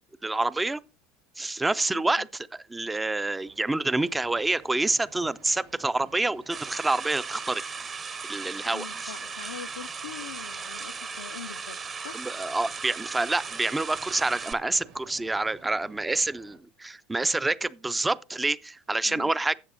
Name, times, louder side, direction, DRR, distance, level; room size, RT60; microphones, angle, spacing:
voice 1, 0.2-0.8 1.4-2.3 2.7-7.6 8.2-9.1 12.1-19.6, right 2 dB, 10° right, 0.4 m, -27 dB
voice 2, 1.9-2.3 8.7-11.8 12.0-12.2 19.0-19.3, left 8 dB, 80° left, 0.4 m, -43 dB
sound 1, 3.3-16.6, right 4 dB, 70° right, 3.3 m, -55 dB
sound 2, 6.5-14.5, right 5 dB, 35° right, 0.9 m, -37 dB
13.0 x 8.1 x 2.6 m
hypercardioid pair, 75°, 0 cm